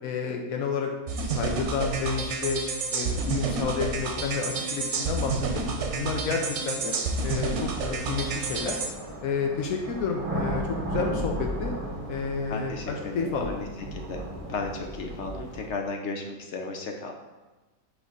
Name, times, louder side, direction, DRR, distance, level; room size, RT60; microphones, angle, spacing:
voice 1, 0.0-0.9 1.2-2.6 2.9-5.7 5.9-7.0 7.2-8.8 9.2-11.7 12.1-13.6, left 5 dB, 85° left, 2 dB, 1.2 m, -30 dB
sound 1, 1.1-8.9, right 4 dB, 60° right, 1.0 m, -29 dB
sound 2, 5.1-5.2 6.2-15.7, right 1 dB, 30° right, 0.9 m, -36 dB
voice 2, 12.5-17.1, left 3 dB, 60° left, 3 dB, 0.9 m, -35 dB
6.1 x 3.4 x 5.3 m, 1.2 s
omnidirectional pair, 1.5 m